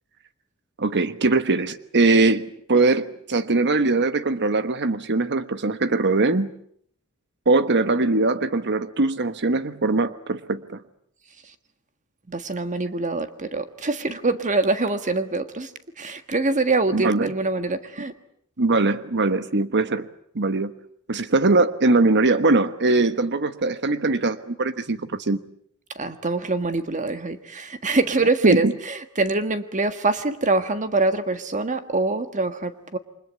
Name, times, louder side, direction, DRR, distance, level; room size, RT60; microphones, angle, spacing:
voice 1, 0.8-6.5 7.5-10.8 16.9-17.3 18.6-20.1 20.3-20.7 21.1-25.4 28.4-28.7, right 3 dB, 50° right, 1.2 m, -21 dB
voice 2, 12.3-15.7 16.0-18.1 25.9-33.0, right 3 dB, 35° right, 1.6 m, -24 dB
29.0 x 25.0 x 8.3 m
head